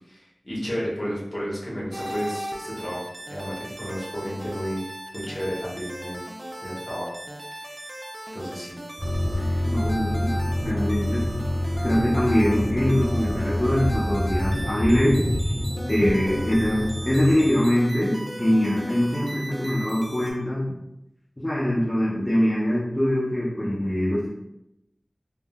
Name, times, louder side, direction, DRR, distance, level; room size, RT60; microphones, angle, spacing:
voice 1, 0.0-4.8 5.1-6.2 6.6-7.1 7.5-7.7 8.3-8.8 9.4-9.7, equal, 55° left, -6 dB, 1.1 m, -32 dB
sound 1, 1.9-20.3, right 1 dB, 60° right, 0.4 m, -37 dB
sound 2, 9.0-17.5, left 1 dB, 15° right, 1.1 m, -27 dB
voice 2, 9.6-11.2 11.8-15.3 15.9-20.6 21.4-24.3, equal, 30° left, -8 dB, 0.6 m, -23 dB
3.6 x 2.0 x 2.3 m, 0.84 s
wide cardioid pair, 50°, 0 cm